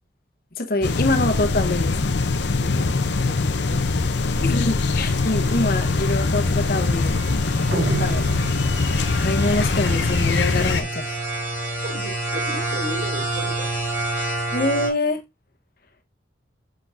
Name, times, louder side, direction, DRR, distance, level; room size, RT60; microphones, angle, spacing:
voice 1, 0.5-2.0 4.4-7.1 7.7-8.2 9.2-11.2 14.5-15.2, left 2 dB, 50° left, 1.1 m, -25 dB
sound 1, 0.8-10.8, left 3 dB, 70° left, 0.7 m, -22 dB
sound 2, 2.5-14.9, right 2 dB, 15° right, 3.9 m, -30 dB
voice 2, 2.6-3.9 4.4-4.7 7.8-8.4 11.8-13.7 14.2-14.5, right 1 dB, 65° right, 4.3 m, -36 dB
sound 3, 7.7-9.2, right 4 dB, 85° right, 0.8 m, -29 dB
7.8 x 6.4 x 2.6 m
head